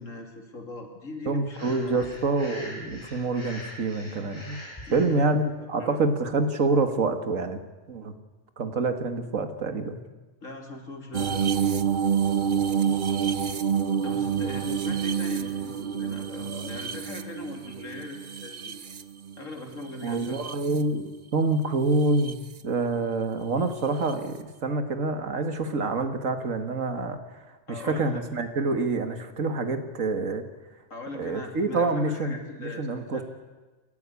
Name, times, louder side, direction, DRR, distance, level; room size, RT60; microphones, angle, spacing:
voice 1, 0.0-2.2 4.9-5.3 5.8-6.0 10.4-11.5 14.0-18.6 19.4-20.4 27.7-28.2 30.9-33.2, left 2 dB, 80° left, 3 dB, 3.2 m, -40 dB
voice 2, 1.3-4.6 4.9-7.6 7.9-8.1 8.6-10.0 20.0-27.2 27.7-30.4 31.1-33.2, right 3 dB, 90° right, 8 dB, 2.1 m, -27 dB
Breathing, 1.5-5.1, left 1 dB, 20° left, 7.2 m, -43 dB
sound 1, 11.1-19.5 20.0-20.8 22.0-22.3 24.1-24.2, right 7 dB, 45° right, 0.9 m, -28 dB
28.0 x 13.0 x 8.4 m, 1.2 s
omnidirectional pair, 1.3 m